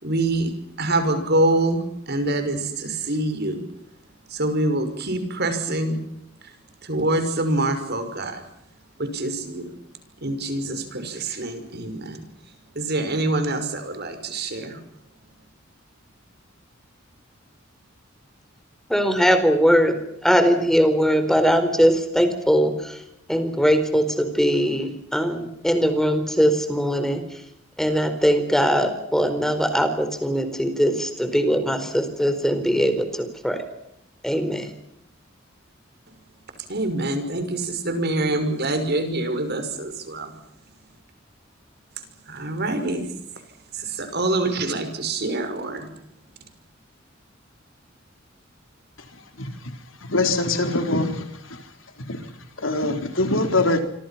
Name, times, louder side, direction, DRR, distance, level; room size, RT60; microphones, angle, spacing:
voice 1, 0.0-0.5 0.8-3.6 4.3-6.0 6.8-8.4 9.0-9.7 10.2-12.2 12.8-14.8 36.7-40.3 42.3-43.1 43.7-45.9, right 2 dB, 55° right, 8 dB, 5.9 m, -25 dB
voice 2, 18.9-19.9 20.2-23.0 23.3-27.2 27.8-33.6 34.2-34.7, equal, ahead, 9 dB, 4.4 m, -21 dB
voice 3, 50.1-51.2 52.1-52.2 52.6-53.8, left 2 dB, 75° left, 6 dB, 4.1 m, -22 dB
27.5 x 26.0 x 5.8 m, 0.76 s
head